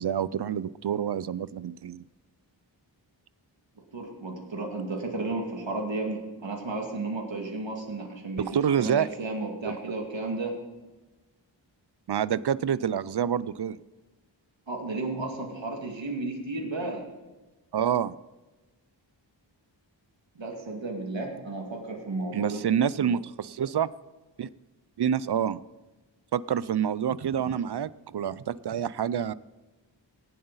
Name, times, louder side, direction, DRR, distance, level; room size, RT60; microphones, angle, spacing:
voice 1, 0.0-2.0 8.4-9.1 9.6-9.7 12.1-13.8 17.7-18.1 22.3-23.9 24.4-24.5 25.0-25.6 26.3-29.3, right 8 dB, 60° right, 19 dB, 0.5 m, -27 dB
voice 2, 3.9-10.6 14.7-17.0 20.4-22.6 23.0-23.1, right 2 dB, 75° right, 1 dB, 2.3 m, -33 dB
17.5 x 7.9 x 4.0 m, 1.2 s
wide cardioid pair, 70°, 45 cm